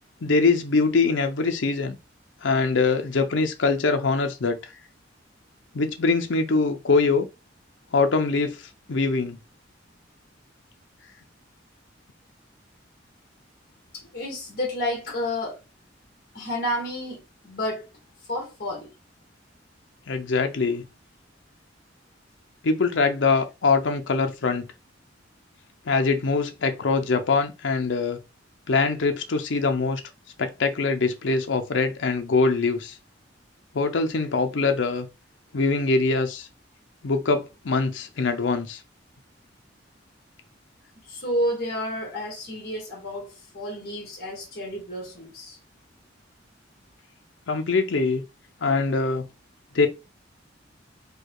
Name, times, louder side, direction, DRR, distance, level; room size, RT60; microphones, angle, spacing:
voice 1, 0.2-2.0 2.4-4.6 5.7-7.3 7.9-8.6 8.9-9.4 20.1-20.8 22.6-24.6 25.9-28.2 28.7-30.0 30.4-32.9 33.7-35.1 35.5-36.5 37.0-38.8 47.5-48.2 48.6-49.3 49.7-49.9, left 4 dB, 75° left, 0.6 m, -23 dB
voice 2, 13.9-15.6 16.3-17.9 18.3-18.9 41.1-45.6, equal, 55° left, 1.7 m, -30 dB
4.6 x 2.3 x 4.7 m
head